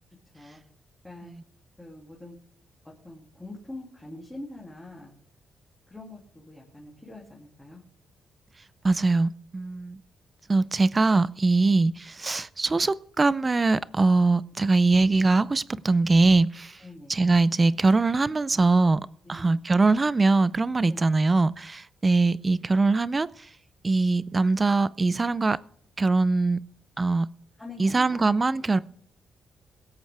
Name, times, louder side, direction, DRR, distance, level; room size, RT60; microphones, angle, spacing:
voice 1, 1.8-2.4 3.0-5.1 5.9-7.8 11.6-11.7 16.8-17.2 19.2-19.6 20.9-21.0 27.6-28.3, left 2 dB, 10° left, 2.6 m, -44 dB
voice 2, 8.8-10.0 10.5-16.7 17.1-19.0 19.3-23.3 23.8-25.6 26.0-26.6 27.0-27.3 27.8-28.8, right 3 dB, 20° right, 0.4 m, -22 dB
22.5 x 8.1 x 3.4 m
cardioid pair, 145°, 0 cm